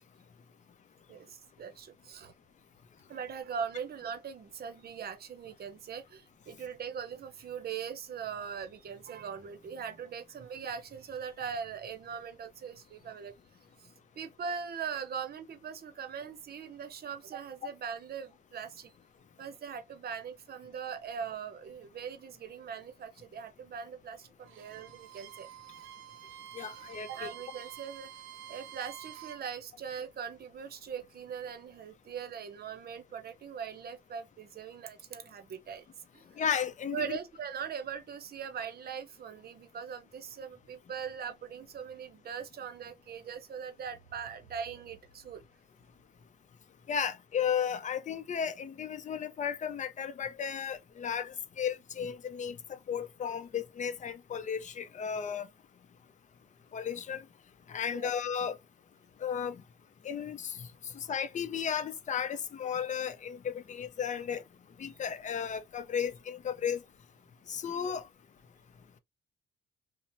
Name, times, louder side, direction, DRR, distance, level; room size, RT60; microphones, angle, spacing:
voice 1, 1.1-2.3 3.1-13.3 13.8-13.9 14.2-18.9 19.4-25.5 25.8-26.0 27.1-28.1 28.5-35.8 36.1-36.4 36.9-45.4 57.9-58.1 64.9-65.0 67.8-68.0, right 7 dB, 50° right, 0.7 m, -41 dB
Bowed string instrument, 24.4-29.4, right 12 dB, 85° right, 0.4 m, -48 dB
voice 2, 26.5-27.3 36.4-37.2 46.9-52.6 52.9-55.5 56.7-57.2 57.7-58.6 59.2-59.6 60.0-60.7 60.9-64.4 64.8-66.8 67.5-68.1, left 7 dB, 40° left, 0.5 m, -34 dB
2.8 x 2.1 x 2.6 m
cardioid pair, 90°, 20 cm